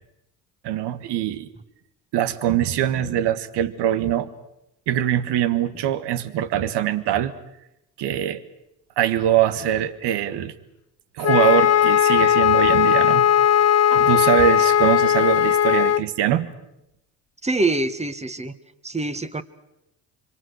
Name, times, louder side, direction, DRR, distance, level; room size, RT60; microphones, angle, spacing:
voice 1, 0.6-1.5 2.1-4.3 4.9-7.3 8.0-8.4 9.0-10.5 11.2-13.3 13.9-16.5, right 11 dB, 65° right, 12 dB, 1.7 m, -22 dB
Wind instrument woodwind instrument, 11.2-16.0, left 9 dB, 35° left, 0.8 m, -17 dB
voice 2, 17.4-18.5 18.8-19.4, right 2 dB, 15° right, 11 dB, 1.6 m, -24 dB
26.0 x 24.5 x 6.4 m, 0.88 s
hypercardioid pair, 65°, 44 cm